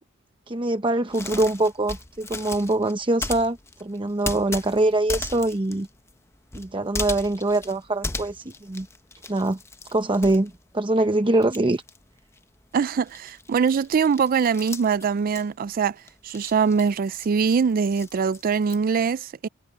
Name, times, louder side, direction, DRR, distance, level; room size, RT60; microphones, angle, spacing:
voice 1, 0.5-5.9 6.5-8.9 9.3-9.6 9.9-11.8, right 2 dB, 25° right, 0.8 m, -23 dB
sound 1, 1.1-11.1 11.3-18.9, left 3 dB, 15° left, 0.8 m, -37 dB
voice 2, 12.7-19.5, right 6 dB, 45° right, 0.3 m, -23 dB
head